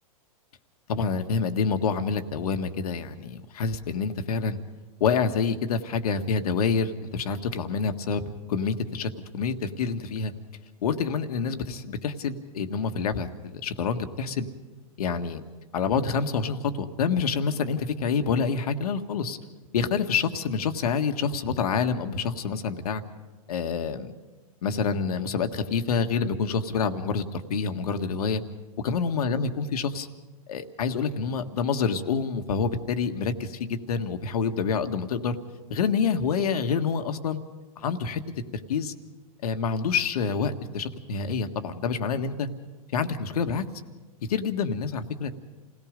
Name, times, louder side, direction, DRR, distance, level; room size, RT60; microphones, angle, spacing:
voice 1, 0.9-4.6 5.0-8.2 8.5-10.3 10.8-14.5 15.0-15.4 15.7-19.4 19.7-23.0 23.5-24.1 24.6-28.4 28.8-30.1 30.5-35.4 35.7-37.4 37.8-38.2 38.7-38.9 39.4-42.5 42.9-43.6 44.3-45.3, left 5 dB, 75° left, 7 dB, 1.6 m, -27 dB
28.5 x 17.5 x 5.2 m, 1.2 s
hypercardioid pair, 150°, 20 cm